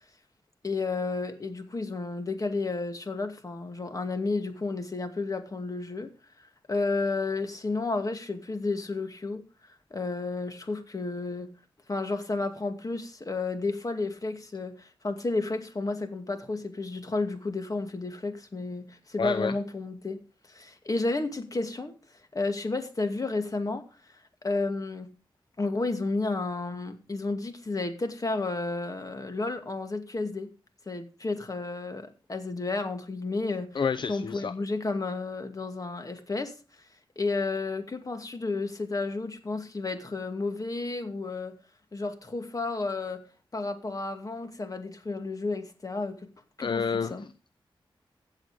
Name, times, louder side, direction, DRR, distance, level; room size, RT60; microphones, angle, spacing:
voice 1, 0.6-6.1 6.4-9.4 9.9-11.5 11.9-20.2 20.5-21.9 22.3-23.9 24.4-25.1 25.6-30.5 30.9-33.8 34.1-36.5 37.2-41.6 41.9-43.2 43.5-46.2 46.6-47.2, left 3 dB, 40° left, 2.3 m, -32 dB
voice 2, 19.2-19.5 33.7-34.5 46.6-47.5, left 5 dB, 60° left, 0.6 m, -29 dB
15.5 x 8.1 x 5.0 m
cardioid pair, 65°, 9 cm